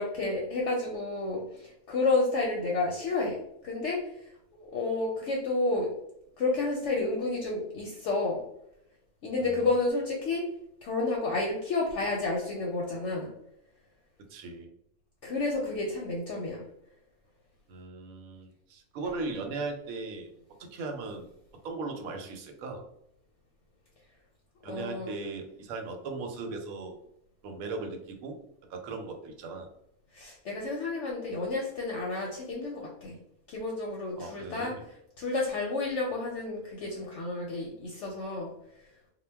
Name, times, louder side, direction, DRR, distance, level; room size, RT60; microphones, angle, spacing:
voice 1, 0.0-3.4 3.6-4.0 4.5-5.9 6.4-8.4 9.2-10.4 10.8-13.3 15.2-16.6 24.6-25.1 30.1-33.2 33.5-38.5, left 3 dB, 65° left, -2 dB, 0.8 m, -30 dB
voice 2, 14.3-14.7 17.7-20.3 20.6-21.3 21.6-22.9 24.6-27.0 27.4-28.4 28.7-29.7 34.2-34.8, right 3 dB, 85° right, 4 dB, 1.0 m, -38 dB
2.2 x 2.1 x 3.2 m, 0.74 s
omnidirectional pair, 1.4 m